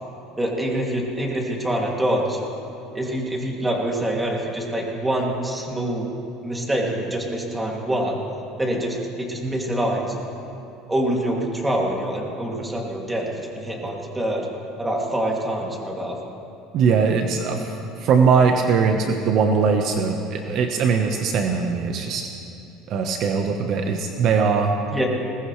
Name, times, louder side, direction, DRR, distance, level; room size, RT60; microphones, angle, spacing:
voice 1, 0.4-2.4 2.9-6.1 6.4-8.2 8.6-10.1 10.9-14.5 14.8-16.2 24.9-25.1, right 1 dB, 10° right, -1 dB, 2.5 m, -25 dB
voice 2, 16.7-17.7 18.0-22.3 22.9-24.7, right 5 dB, 50° right, 4 dB, 1.1 m, -20 dB
21.0 x 18.5 x 3.2 m, 2.7 s
cardioid pair, 130°, 0 cm